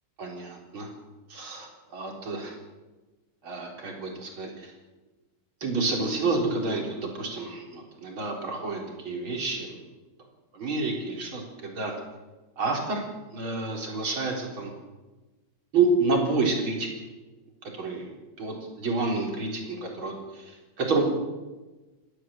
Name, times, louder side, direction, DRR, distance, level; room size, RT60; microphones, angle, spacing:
voice 1, 0.2-0.9 1.3-2.6 3.4-4.7 5.6-9.8 10.5-11.9 12.6-14.7 15.7-16.9 17.7-18.1 18.4-18.5 18.8-21.0, right 3 dB, 80° right, 1 dB, 4.7 m, -29 dB
30.0 x 13.0 x 7.7 m, 1.2 s
omnidirectional pair, 2.2 m